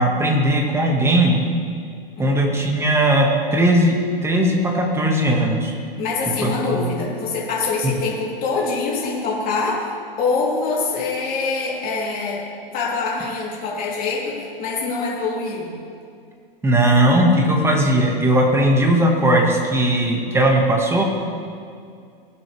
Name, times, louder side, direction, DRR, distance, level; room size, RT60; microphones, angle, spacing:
voice 1, 0.0-1.4 2.2-4.0 4.2-5.7 6.4-6.5 6.8-6.9 16.6-21.0, right 1 dB, 10° right, 0 dB, 1.7 m, -18 dB
voice 2, 6.0-9.9 10.2-12.4 12.7-15.7, left 4 dB, 30° left, -5 dB, 3.3 m, -24 dB
18.5 x 8.1 x 3.4 m, 2.3 s
hypercardioid pair, 120°, 29 cm